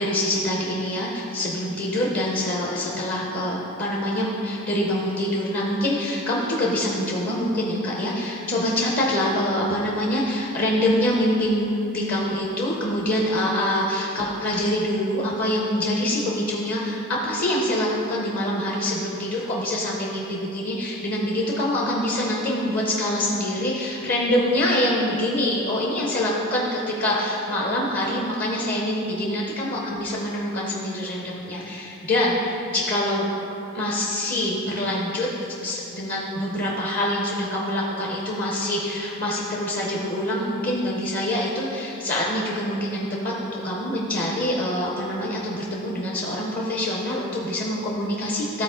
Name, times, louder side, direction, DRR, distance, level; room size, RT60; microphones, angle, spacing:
voice 1, 0.0-33.3 33.7-35.3 35.6-48.6, left 1 dB, 45° left, -3 dB, 0.8 m, -25 dB
13.0 x 4.4 x 3.8 m, 2.9 s
head